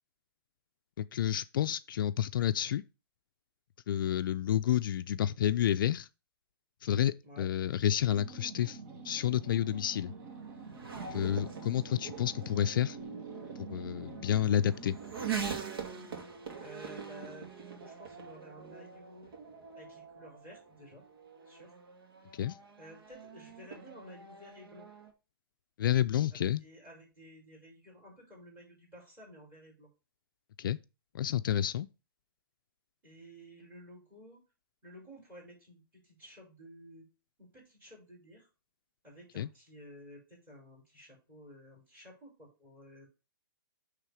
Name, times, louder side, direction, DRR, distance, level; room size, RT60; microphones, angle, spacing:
voice 1, 1.0-2.8 3.9-6.1 6.8-8.8 9.0-10.1 11.1-13.0 13.7-14.9 22.3-22.6 25.8-26.6 30.6-30.8 31.1-31.9 39.4-39.5, left 10 dB, 60° left, 0.4 m, -30 dB
sound 1, 8.0-15.1, right 4 dB, 40° right, 1.6 m, -48 dB
Race car auto racing / Accelerating revving vroom, 8.9-25.1, right 6 dB, 75° right, 2.0 m, -44 dB
voice 2, 16.6-19.3 19.7-21.0 21.4-21.7 22.8-24.9 26.3-29.9 33.0-34.4 34.8-37.0 37.4-38.5 39.0-43.1, equal, 15° right, 4.7 m, -53 dB
9.1 x 3.5 x 4.8 m
hypercardioid pair, 155°, 12 cm